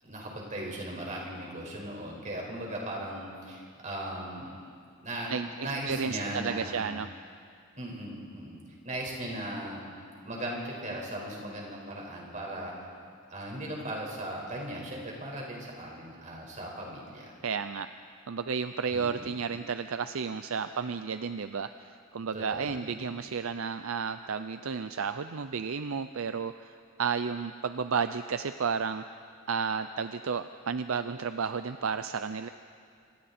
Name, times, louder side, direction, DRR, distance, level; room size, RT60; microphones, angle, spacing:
voice 1, 0.0-4.5 5.0-7.0 7.8-8.6 8.8-9.8 10.2-12.7 13.3-17.3 18.9-19.3 22.3-22.9, right 1 dB, 35° right, -1 dB, 5.1 m, -38 dB
voice 2, 5.3-7.1 17.4-17.9 18.3-29.0 29.5-32.5, right 6 dB, 65° right, 10 dB, 0.6 m, -32 dB
27.0 x 25.5 x 4.4 m, 2.2 s
head